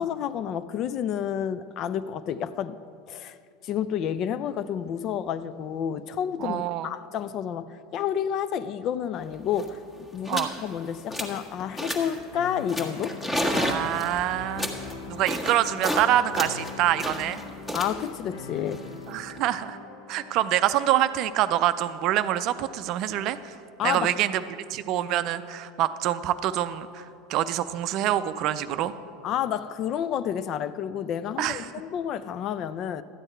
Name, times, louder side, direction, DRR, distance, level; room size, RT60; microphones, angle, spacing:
voice 1, 0.0-2.8 3.1-3.4 3.6-13.2 17.7-18.9 23.8-24.1 29.2-33.0, left 9 dB, 45° left, 0.4 m, -30 dB
voice 2, 6.4-6.9 10.3-10.5 13.4-14.7 15.1-17.4 19.1-19.8 20.1-23.6 23.8-28.9 31.4-31.7, right 12 dB, 50° right, 0.4 m, -26 dB
sound 1, 9.2-9.3 9.5-9.8 10.2-10.6 10.9-11.4 11.8-12.2 12.7-16.1 16.3-19.4, left 1 dB, 20° left, 1.5 m, -31 dB
sound 2, 12.3-20.3, left 5 dB, 70° left, 0.7 m, -42 dB
12.5 x 8.9 x 4.5 m
figure-of-eight pair, 75°, 0 cm